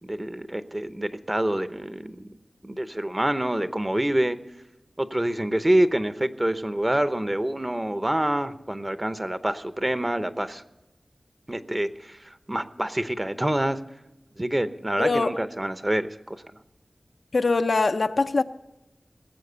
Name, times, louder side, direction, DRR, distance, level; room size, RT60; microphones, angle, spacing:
voice 1, 0.0-2.3 2.6-4.4 5.0-10.6 11.5-13.8 14.4-16.4, right 1 dB, 20° right, 12 dB, 0.8 m, -26 dB
voice 2, 15.0-15.4 17.3-18.4, left 3 dB, 75° left, 9 dB, 0.6 m, -22 dB
19.0 x 7.6 x 6.8 m, 0.99 s
wide cardioid pair, 70°, 0 cm